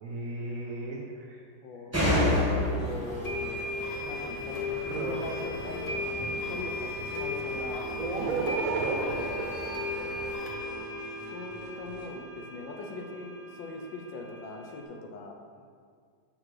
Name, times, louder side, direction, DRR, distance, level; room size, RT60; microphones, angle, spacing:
voice 1, 0.0-1.4 4.9-5.2 6.2-6.6 8.0-9.5 13.0-13.1 15.6-15.7, right 3 dB, 65° right, -2 dB, 0.9 m, -33 dB
voice 2, 1.6-3.6 4.0-7.8 11.3-15.4, left 3 dB, 85° left, 2 dB, 1.5 m, -41 dB
sound 1, 1.9-10.3, left 1 dB, 10° right, 1.2 m, -33 dB
sound 2, 2.3-2.4 3.2-14.8, left 2 dB, 40° left, 0.6 m, -36 dB
sound 3, 2.8-12.1, right 1 dB, 30° right, 0.8 m, -49 dB
6.2 x 6.1 x 3.2 m, 2.1 s
omnidirectional pair, 2.0 m